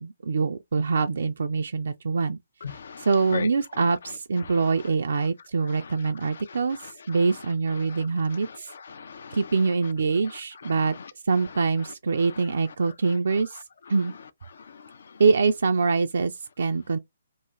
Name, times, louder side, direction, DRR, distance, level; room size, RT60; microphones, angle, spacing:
voice 1, 0.0-2.4 2.7-6.8 7.1-8.7 9.3-10.9 11.2-13.6 13.9-14.1 15.2-17.0, right 4 dB, 65° right, 0.3 m, -24 dB
voice 2, 2.6-3.5 4.4-4.7 5.7-6.0 6.2-7.4 7.8-9.5 10.3-11.1 12.2-12.3 13.3-13.4 14.5-15.1, left 6 dB, 60° left, 0.4 m, -40 dB
2.6 x 2.4 x 3.0 m
figure-of-eight pair, 135°, 0 cm